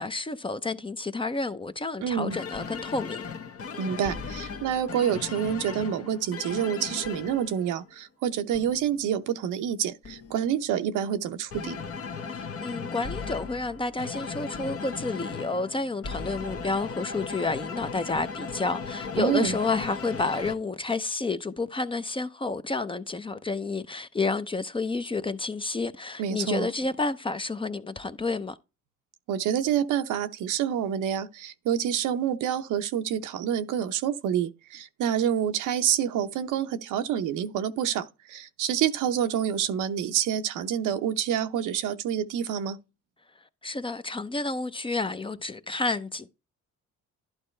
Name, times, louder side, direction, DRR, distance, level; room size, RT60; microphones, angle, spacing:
voice 1, 0.0-3.2 12.3-28.6 43.6-46.3, left 3 dB, 15° left, 0.6 m, -30 dB
voice 2, 2.0-2.4 3.8-11.8 19.2-19.6 26.2-26.7 29.3-42.8, right 9 dB, 85° right, 0.8 m, -27 dB
sound 1, 2.3-7.9 8.5-9.1 10.0-10.7 11.5-20.5, left 5 dB, 50° left, 1.0 m, -37 dB
11.5 x 4.2 x 3.2 m
cardioid pair, 90°, 30 cm